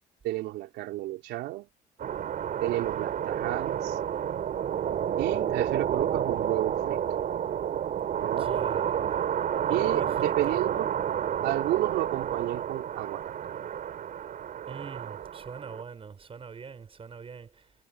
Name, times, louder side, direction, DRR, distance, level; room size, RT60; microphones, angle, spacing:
voice 1, 0.2-1.7 2.6-4.0 5.2-7.0 8.2-8.5 9.7-10.9 11.4-13.3, right 16 dB, 85° right, 3.7 m, -31 dB
sound 1, 2.0-15.8, right 9 dB, 55° right, 4.4 m, -30 dB
voice 2, 8.2-9.2 9.7-10.6 14.7-17.5, right 5 dB, 35° right, 6.4 m, -41 dB
cardioid pair, 110°, 17 cm